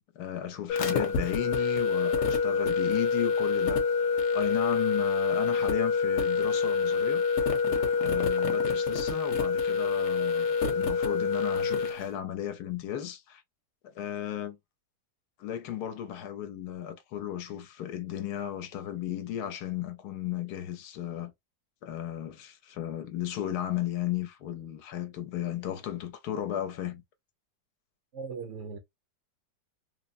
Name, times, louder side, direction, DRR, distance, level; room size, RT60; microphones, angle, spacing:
voice 1, 0.1-7.2 8.0-13.4 13.8-14.6 15.4-21.3 21.8-27.0, left 11 dB, 80° left, 1.1 m, -35 dB
sound 1, 0.7-12.0, left 5 dB, 60° left, 0.9 m, -27 dB
voice 2, 28.1-28.8, right 5 dB, 65° right, 0.8 m, -38 dB
3.4 x 2.0 x 2.4 m
omnidirectional pair, 1.8 m